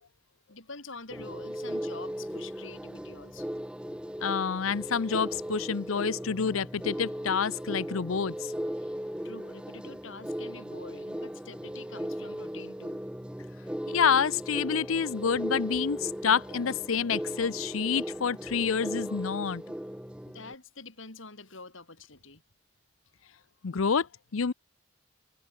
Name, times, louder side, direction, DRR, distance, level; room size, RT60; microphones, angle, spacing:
voice 1, 0.5-3.5 8.8-8.9 9.2-13.0 20.2-22.4, left 3 dB, 70° left, 4.9 m, -46 dB
sound 1, 1.1-20.5, equal, 5° right, 1.3 m, -37 dB
voice 2, 4.2-8.5 13.9-19.6 23.6-24.5, left 6 dB, 85° left, 0.6 m, -28 dB
head